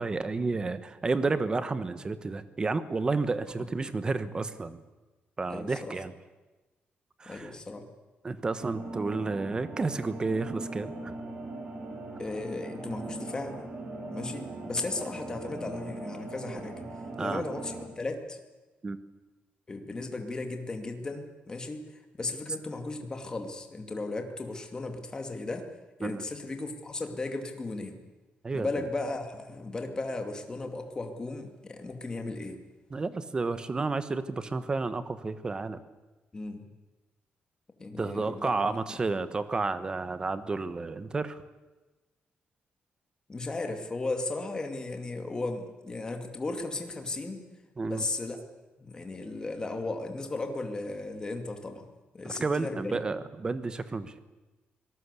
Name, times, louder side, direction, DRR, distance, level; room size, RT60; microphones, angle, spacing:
voice 1, 0.0-4.8 5.4-6.1 7.2-7.5 8.2-11.2 17.2-17.4 18.8-19.0 26.0-26.2 28.4-28.7 32.9-35.8 38.0-41.4 47.8-48.0 52.2-54.2, right 3 dB, 20° right, 13 dB, 1.2 m, -31 dB
voice 2, 5.5-6.0 7.3-7.9 12.2-13.7 14.1-16.8 17.2-18.4 19.7-25.7 26.0-28.0 28.5-32.6 36.3-36.6 37.8-39.0 43.3-47.4 47.9-48.4 48.8-51.9 52.1-53.0, left 2 dB, 20° left, 5 dB, 2.4 m, -36 dB
sound 1, 8.6-17.9, right 2 dB, 40° right, 4.4 m, -40 dB
25.0 x 18.5 x 8.3 m, 1.2 s
wide cardioid pair, 170°, 4 cm